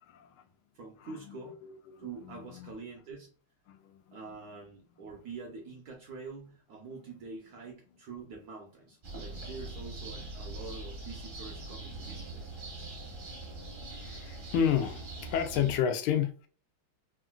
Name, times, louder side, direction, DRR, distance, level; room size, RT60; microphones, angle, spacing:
voice 1, 0.7-1.6 2.0-3.3 4.1-12.6, right 4 dB, 70° right, 0.9 m, -45 dB
voice 2, 1.6-2.7 3.7-4.2 13.9-16.5, left 8 dB, 85° left, 1.4 m, -31 dB
sound 1, 9.0-15.8, right 2 dB, 45° right, 0.7 m, -42 dB
3.6 x 2.5 x 2.2 m
omnidirectional pair, 2.2 m